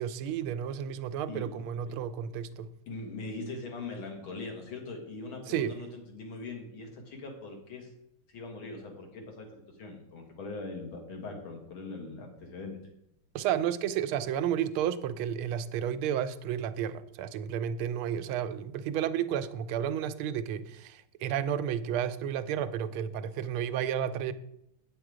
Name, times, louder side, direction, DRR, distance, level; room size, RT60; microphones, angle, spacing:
voice 1, 0.0-2.7 5.5-5.8 13.3-24.3, right 9 dB, 85° right, 1.5 m, -32 dB
voice 2, 2.9-7.9 8.3-12.8, left 3 dB, 75° left, 2.5 m, -41 dB
8.5 x 7.8 x 4.9 m
omnidirectional pair, 2.3 m